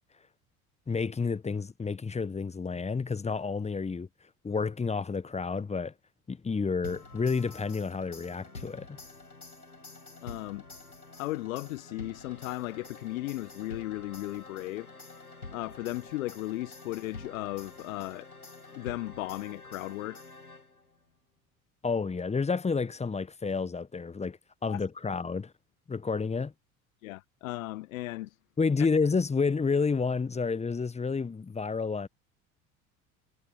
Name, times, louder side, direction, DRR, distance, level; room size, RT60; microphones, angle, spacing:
voice 1, 0.9-4.1 4.4-5.9 6.3-9.0 21.8-25.5 25.9-26.5 28.6-32.1, left 4 dB, 15° left, 1.1 m, -30 dB
sound 1, 6.8-21.0, left 3 dB, 90° left, 2.5 m, -48 dB
voice 2, 10.2-10.7 11.2-14.9 15.5-18.3 18.7-20.3 24.7-24.8 27.0-28.4 28.8-28.9, left 18 dB, 70° left, 1.2 m, -36 dB
figure-of-eight pair, 60°, 43 cm